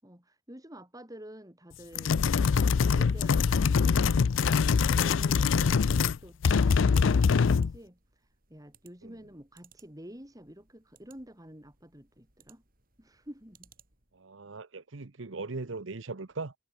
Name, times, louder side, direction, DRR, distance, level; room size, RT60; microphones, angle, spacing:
voice 1, 0.0-2.2 2.9-4.6 4.9-5.8 6.2-8.0 8.5-12.6 13.0-13.7, equal, 20° right, 5.6 m, -49 dB
sound 1, 1.9-6.2 6.4-7.7, left 5 dB, 75° left, 0.4 m, -24 dB
sound 2, 5.1-14.2, right 7 dB, 50° right, 6.8 m, -63 dB
voice 2, 14.1-16.5, right 3 dB, 75° right, 1.0 m, -39 dB
head